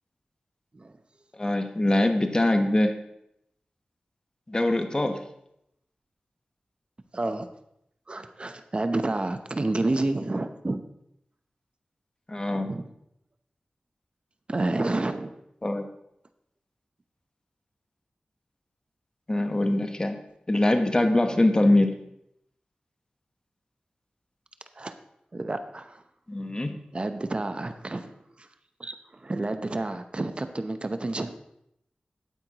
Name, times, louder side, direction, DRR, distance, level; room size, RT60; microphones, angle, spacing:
voice 1, 1.3-3.0 4.5-5.2 12.3-12.7 15.6-15.9 19.3-20.2 20.5-22.0 26.3-26.8, left 1 dB, 30° left, 6 dB, 1.1 m, -23 dB
voice 2, 7.1-7.5 8.1-10.8 12.5-12.9 14.5-15.3 24.8-24.9 25.3-26.0 26.9-28.5 28.8-31.3, right 2 dB, 40° right, 9 dB, 0.8 m, -30 dB
12.0 x 8.8 x 3.0 m, 0.78 s
wide cardioid pair, 65°, 3 cm